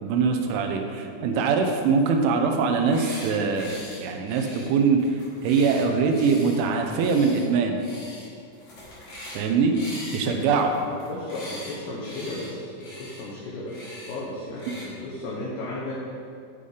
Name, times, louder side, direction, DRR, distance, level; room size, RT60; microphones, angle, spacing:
voice 1, 0.0-5.1 5.4-7.8 9.3-9.8 10.1-10.7 14.7-14.8, right 5 dB, 90° right, 4 dB, 3.3 m, -23 dB
sound 1, 2.7-3.3 3.6-4.0 4.3-6.6 6.9-7.4 7.8-8.3 8.5-9.4 9.7-11.7 12.0-12.5 12.8-13.2 13.7-14.1 14.5-14.9, left 1 dB, 45° left, 2.4 m, -42 dB
voice 2, 10.1-10.4 10.7-16.0, left 2 dB, 70° left, -7 dB, 3.3 m, -35 dB
11.5 x 5.5 x 5.0 m, 2.3 s
omnidirectional pair, 5.3 m